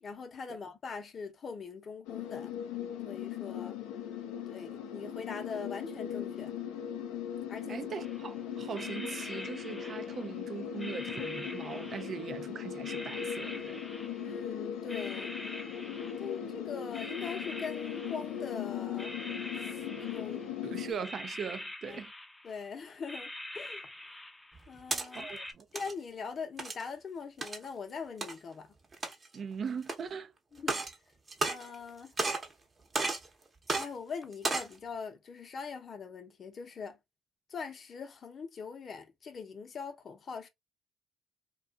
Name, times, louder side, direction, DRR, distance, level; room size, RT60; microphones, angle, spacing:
voice 1, 0.0-2.5 3.0-3.8 4.5-6.5 7.5-7.8 14.2-15.3 16.2-19.1 19.6-20.5 21.9-22.0 22.4-23.3 23.5-23.9 24.7-25.3 25.7-28.7 30.5-30.8 31.4-32.1 33.7-37.0 37.5-40.5, left 5 dB, 55° left, 0.6 m, -42 dB
sound 1, 2.0-20.9, left 9 dB, 85° left, 0.4 m, -39 dB
voice 2, 7.7-13.8 20.6-22.1 25.1-25.7 29.3-30.3, right 6 dB, 55° right, 0.4 m, -40 dB
sound 2, 8.0-8.3 8.7-10.4 10.8-12.4 12.8-14.5 14.9-16.6 16.9-18.6 19.0-20.7 21.0-22.7 23.1-24.7 25.1-25.5, left 1 dB, 15° left, 0.5 m, -45 dB
sound 3, 24.5-25.1 25.6-25.9 26.6-26.9 27.4-27.6 28.2-28.3 28.9-29.4 29.9-30.0 30.6-30.9 31.3-31.9 32.2-32.5 32.9-33.3 33.7-33.9 34.3-34.7, right 3 dB, 35° right, 0.8 m, -32 dB
2.4 x 2.3 x 2.3 m
supercardioid pair, 55°, 0 cm